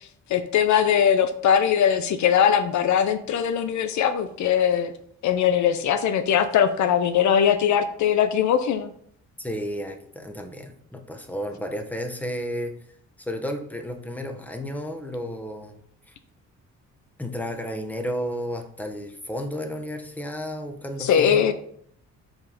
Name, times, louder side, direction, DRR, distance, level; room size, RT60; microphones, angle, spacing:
voice 1, 0.3-4.9 5.2-8.9 21.0-21.5, left 8 dB, 70° left, 10 dB, 0.6 m, -21 dB
voice 2, 9.4-12.7 13.2-15.8 16.1-16.2 17.2-21.5, equal, 5° left, 4 dB, 1.2 m, -32 dB
5.4 x 4.7 x 5.3 m, 0.65 s
cardioid pair, 90°, 30 cm